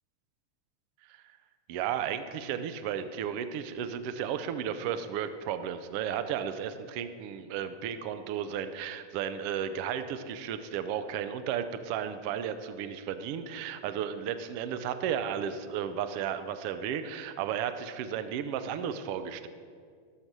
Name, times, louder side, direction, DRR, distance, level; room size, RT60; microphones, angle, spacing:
voice 1, 1.7-19.5, right 8 dB, 80° right, 10 dB, 1.3 m, -34 dB
13.0 x 13.0 x 6.1 m, 2.1 s
omnidirectional pair, 3.6 m